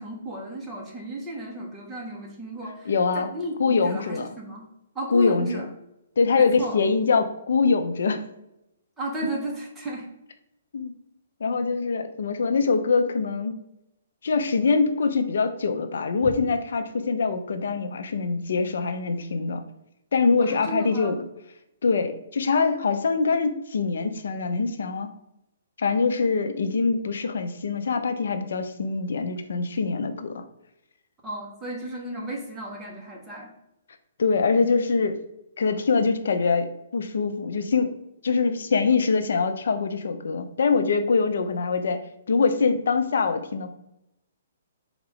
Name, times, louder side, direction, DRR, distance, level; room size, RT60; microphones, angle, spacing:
voice 1, 0.0-4.7 4.9-5.7 6.3-6.8 9.0-10.1 16.2-16.3 20.4-21.2 31.2-33.5, right 1 dB, 10° right, -2 dB, 1.0 m, -34 dB
voice 2, 2.9-3.3 3.6-4.3 5.1-5.5 6.2-8.2 10.7-10.9 11.4-13.5 14.2-19.6 20.1-21.2 21.8-25.1 25.8-30.4 34.2-35.2 35.6-36.7 36.9-37.9 38.2-42.0 42.3-43.7, left 4 dB, 70° left, 8 dB, 0.5 m, -23 dB
4.3 x 2.4 x 3.5 m, 0.86 s
hypercardioid pair, 150°, 0 cm